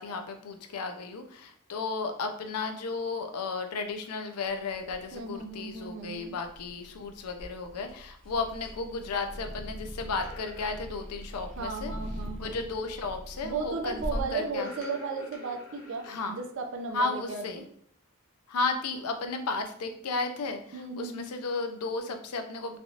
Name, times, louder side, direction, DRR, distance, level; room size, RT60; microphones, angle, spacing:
voice 1, 0.0-11.9 12.4-14.7 16.1-16.4 16.9-17.7 18.5-22.8, left 3 dB, 90° left, 6 dB, 0.5 m, -34 dB
sound 1, 4.5-14.2, equal, 5° left, 0.4 m, -41 dB
voice 2, 5.1-6.4 11.6-12.6 13.4-17.6 20.7-21.3, right 4 dB, 55° right, 3 dB, 0.4 m, -35 dB
sound 2, 10.2-10.8 12.8-13.1 14.5-16.5 16.8-17.0, equal, 65° left, 1.0 m, -47 dB
3.3 x 2.6 x 2.4 m, 0.65 s
head